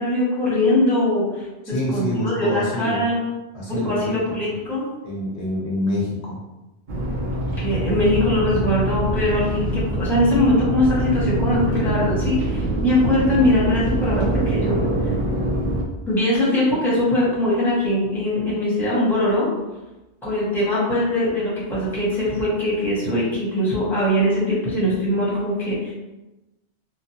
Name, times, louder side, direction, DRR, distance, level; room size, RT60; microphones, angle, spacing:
voice 1, 0.0-1.4 1.9-3.2 3.7-4.9 7.6-14.8 16.1-19.5 20.2-25.9, left 1 dB, ahead, -8 dB, 0.9 m, -21 dB
voice 2, 1.6-3.0 3.5-4.2 5.0-6.4, left 1 dB, 70° left, -4 dB, 1.1 m, -26 dB
sound 1, 6.9-15.8, right 1 dB, 55° right, 0.6 m, -24 dB
3.0 x 2.0 x 2.8 m, 1.0 s
omnidirectional pair, 1.2 m